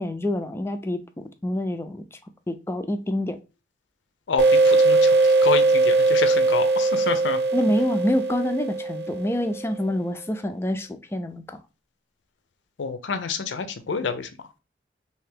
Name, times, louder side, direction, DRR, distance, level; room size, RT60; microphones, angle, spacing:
voice 1, 0.0-2.2 2.5-3.4 7.5-11.6, left 1 dB, 15° left, 0.3 m, -27 dB
voice 2, 4.3-7.4 12.8-14.3, left 5 dB, 85° left, 0.5 m, -28 dB
sound 1, 4.4-9.7, right 3 dB, 65° right, 0.5 m, -20 dB
3.3 x 2.8 x 3.3 m
head